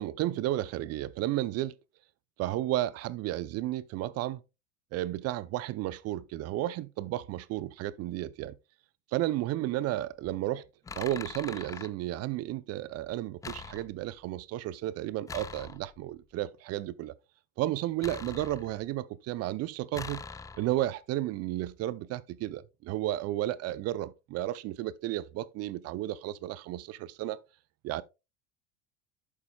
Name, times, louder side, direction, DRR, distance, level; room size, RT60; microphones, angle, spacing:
voice 1, 0.0-1.7 2.4-4.4 4.9-8.6 9.1-10.6 11.0-17.1 17.6-20.2 20.6-27.4 27.8-28.0, right 14 dB, 40° right, 0.6 m, -33 dB
sound 1, 10.1-10.4 10.8-11.9 13.4-14.2 15.3-16.1 18.0-19.0 19.9-20.9, left 5 dB, 10° left, 0.3 m, -43 dB
11.0 x 7.3 x 2.3 m
hypercardioid pair, 85°, 38 cm